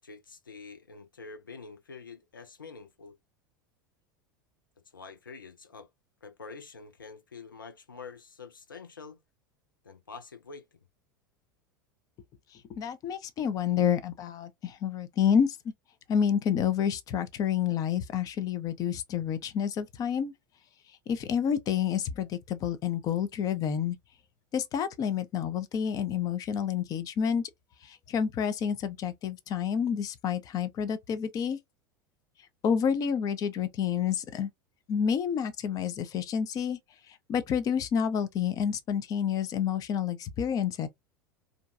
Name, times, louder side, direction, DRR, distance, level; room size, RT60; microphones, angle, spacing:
voice 1, 0.0-3.2 4.9-5.9 6.2-9.2 9.8-10.6, left 4 dB, 85° left, 0.5 m, -46 dB
voice 2, 12.7-15.6 16.1-20.3 21.1-24.0 24.5-27.5 27.8-31.6 32.6-34.5 34.9-36.8 37.3-40.9, left 8 dB, 35° left, 0.5 m, -29 dB
2.5 x 2.2 x 2.4 m
figure-of-eight pair, 80°, 11 cm